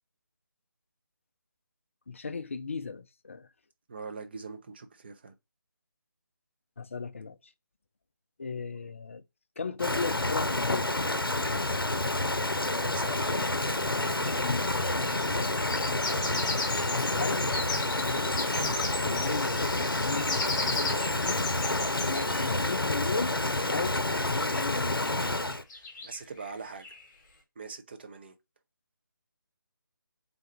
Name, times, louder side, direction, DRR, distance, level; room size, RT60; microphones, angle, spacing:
voice 1, 2.1-3.5 6.8-7.5 8.4-9.2 9.6-10.9 14.4-14.8 15.9-16.2 16.8-17.5 18.0-21.5 22.0-23.4 23.7-25.2, left 4 dB, 35° left, 0.3 m, -37 dB
voice 2, 3.9-5.3 12.7-13.6 14.1-14.7 25.7-27.0 27.6-28.4, right 4 dB, 30° right, 0.5 m, -43 dB
Rain, 9.8-25.6, left 2 dB, 90° left, 0.6 m, -29 dB
sound 1, 13.1-22.8 23.6-27.1, left 3 dB, 15° left, 1.0 m, -37 dB
3.9 x 2.3 x 4.4 m
figure-of-eight pair, 155°, 12 cm